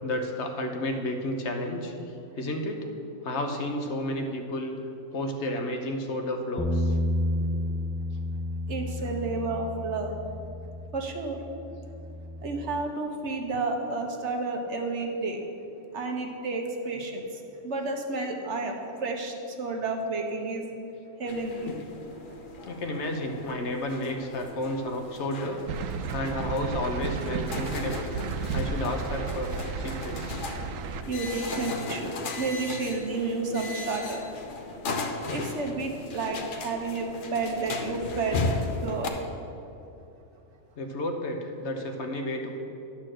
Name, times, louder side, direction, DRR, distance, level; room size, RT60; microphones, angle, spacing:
voice 1, 0.0-1.9 2.4-2.8 3.2-4.8 5.1-7.0 9.0-9.4 16.9-17.1 22.6-25.6 26.1-28.1 28.5-30.5 40.8-42.6, left 1 dB, 65° left, 4 dB, 1.2 m, -32 dB
Bass guitar, 6.6-12.8, left 1 dB, 5° left, 0.4 m, -31 dB
voice 2, 8.7-10.2 10.9-11.4 12.4-15.4 15.9-17.3 17.6-18.7 19.0-20.7 21.2-21.7 30.9-34.2 35.3-38.4 38.8-39.2, right 3 dB, 65° right, 2 dB, 1.3 m, -31 dB
sound 1, 21.3-39.1, left 3 dB, 50° left, 0.8 m, -37 dB
sound 2, 25.7-31.0, right 5 dB, 90° right, 1.0 m, -33 dB
11.0 x 4.4 x 7.6 m, 2.8 s
omnidirectional pair, 1.3 m